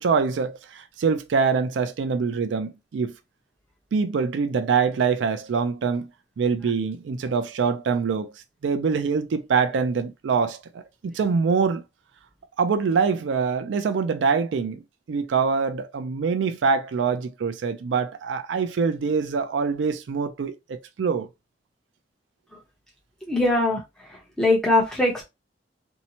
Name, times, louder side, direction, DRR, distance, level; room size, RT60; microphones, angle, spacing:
voice 1, 0.0-3.1 3.9-6.1 6.4-8.3 8.6-11.8 12.6-14.8 15.1-21.3, right 5 dB, 90° right, 0.4 m, -24 dB
voice 2, 23.3-23.8 24.4-25.2, left 2 dB, 5° left, 0.8 m, -20 dB
2.7 x 2.1 x 2.8 m
head